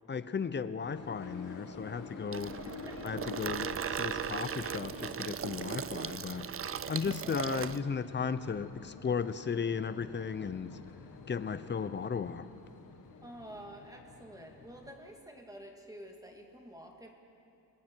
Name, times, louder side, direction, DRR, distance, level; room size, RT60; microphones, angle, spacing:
voice 1, 0.1-2.6 3.0-6.5 6.9-10.8 11.3-12.5, left 6 dB, 30° left, 13 dB, 0.7 m, -35 dB
sound 1, 0.8-14.9, left 5 dB, 55° left, 1.7 m, -49 dB
Water tap faucet / Sink (filling or washing), 2.3-7.8, right 8 dB, 35° right, 0.5 m, -38 dB
voice 2, 2.6-3.2 7.0-7.3 13.2-17.1, right 1 dB, 10° right, 1 dB, 2.1 m, -49 dB
28.5 x 20.0 x 4.6 m, 2.6 s
wide cardioid pair, 145°, 38 cm